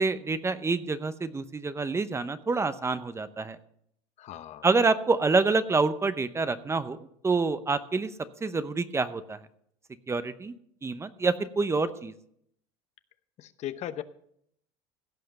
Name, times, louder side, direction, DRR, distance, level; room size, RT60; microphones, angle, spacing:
voice 1, 0.0-3.6 4.6-7.0 7.2-8.1 8.4-9.4 10.1-10.5 10.8-12.1, right 3 dB, 20° right, 13 dB, 0.7 m, -27 dB
voice 2, 4.2-4.7 13.4-14.0, left 11 dB, 50° left, 12 dB, 0.8 m, -37 dB
16.0 x 5.7 x 6.6 m, 0.70 s
supercardioid pair, 100°, 15 cm